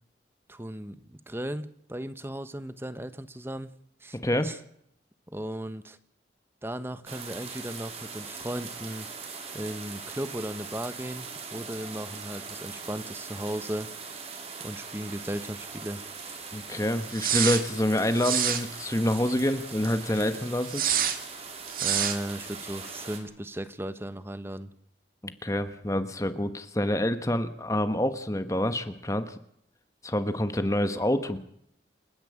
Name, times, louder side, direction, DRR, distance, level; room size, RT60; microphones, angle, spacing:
voice 1, 0.5-3.7 4.0-4.6 5.3-6.0 6.6-9.1 9.5-13.9 14.6-16.0 21.8-24.7, right 1 dB, 15° right, 12 dB, 1.1 m, -36 dB
voice 2, 4.2-4.5 16.5-20.9 25.2-29.3 30.0-31.4, left 1 dB, 15° left, 10 dB, 1.2 m, -27 dB
sound 1, 7.1-23.2, right 5 dB, 35° right, 3.2 m, -41 dB
sound 2, 17.1-17.6 18.2-18.6 20.7-21.2 21.7-22.2, right 9 dB, 50° right, 2.0 m, -26 dB
29.0 x 10.5 x 8.7 m, 0.72 s
head